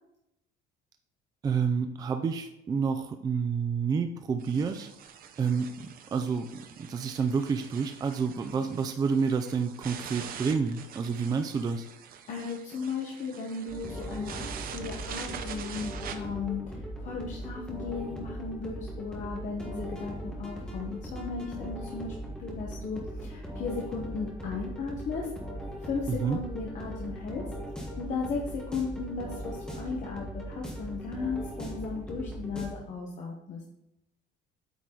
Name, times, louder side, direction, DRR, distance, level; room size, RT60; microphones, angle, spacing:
voice 1, 1.4-4.9 5.4-5.7 6.1-6.6 6.9-11.9 26.1-26.4, right 5 dB, 20° right, 7 dB, 0.4 m, -29 dB
sound 1, 4.4-16.1, right 8 dB, 50° right, 0.7 m, -44 dB
voice 2, 12.3-25.3 25.8-27.5 28.0-33.6, left 4 dB, 40° left, -2 dB, 1.1 m, -36 dB
sound 2, 13.7-32.7, right 1 dB, 5° left, 1.4 m, -39 dB
8.6 x 4.7 x 3.8 m, 0.85 s
cardioid pair, 170°, 20 cm